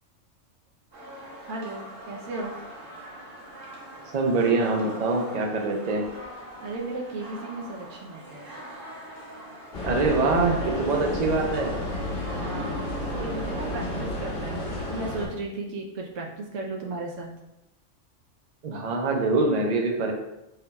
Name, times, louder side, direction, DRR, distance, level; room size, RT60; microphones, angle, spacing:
sound 1, 0.9-14.0, right 1 dB, 65° right, 1.2 m, -42 dB
voice 1, 1.5-2.5 6.6-8.5 12.2-12.9 13.1-17.3, right 2 dB, 90° right, 0 dB, 1.0 m, -35 dB
voice 2, 4.1-6.0 9.8-11.8 18.6-20.1, right 3 dB, 45° right, 2 dB, 0.5 m, -24 dB
sound 2, 9.7-15.3, left 1 dB, 50° left, 1.2 m, -31 dB
3.9 x 2.2 x 4.0 m, 0.90 s
omnidirectional pair, 1.3 m